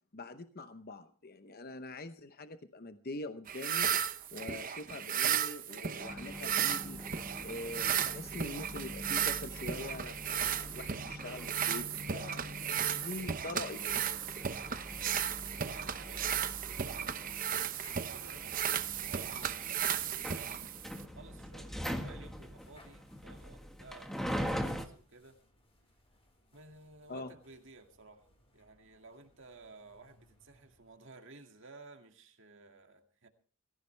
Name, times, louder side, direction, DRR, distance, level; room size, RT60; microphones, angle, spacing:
voice 1, 0.1-3.9 4.3-7.0 7.4-14.1 27.1-27.3, left 2 dB, 45° left, 9 dB, 0.8 m, -44 dB
sound 1, 3.5-21.1, right 9 dB, 40° right, 0.7 m, -35 dB
sound 2, 6.0-24.9, equal, ahead, 1.5 m, -43 dB
sound 3, 15.2-31.3, left 2 dB, 25° left, 4.8 m, -64 dB
voice 2, 15.6-17.2 17.5-20.2 21.1-25.4 26.5-28.3 28.5-33.3, right 3 dB, 60° right, 4 dB, 2.3 m, -55 dB
22.5 x 15.0 x 3.4 m, 0.43 s
head